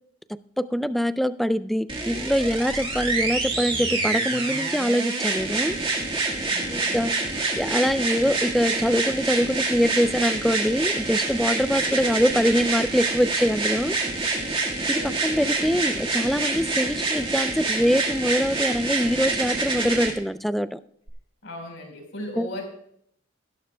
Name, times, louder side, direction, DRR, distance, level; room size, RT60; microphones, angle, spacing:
voice 1, 0.3-5.8 6.7-7.1 7.6-14.0 14.9-20.8 22.4-22.5, equal, ahead, 14 dB, 0.3 m, -24 dB
sound 1, 1.9-20.1 21.1-21.2, right 3 dB, 25° right, 1.7 m, -27 dB
voice 2, 6.4-7.1 11.8-12.3 14.8-15.9 21.4-22.6, left 1 dB, 70° left, 3 dB, 4.2 m, -39 dB
18.5 x 11.5 x 2.2 m, 0.69 s
head